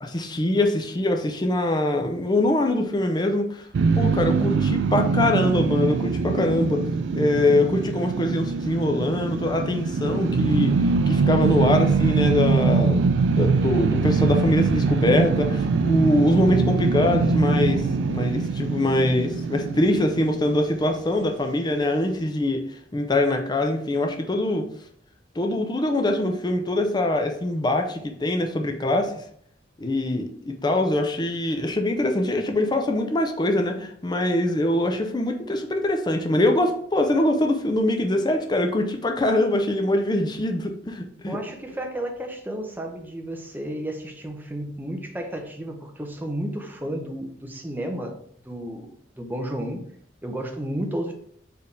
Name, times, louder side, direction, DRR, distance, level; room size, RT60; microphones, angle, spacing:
voice 1, 0.0-3.7 4.0-6.9 7.1-10.8 11.1-22.6 22.9-24.7 25.4-29.2 29.8-41.4, left 1 dB, 25° left, 4 dB, 0.6 m, -23 dB
sound 1, 3.7-20.9, right 4 dB, 80° right, 0.3 m, -23 dB
voice 2, 41.3-48.2 48.4-49.8 50.2-51.1, right 1 dB, 10° right, 3 dB, 0.7 m, -32 dB
4.5 x 3.4 x 3.3 m, 0.63 s
head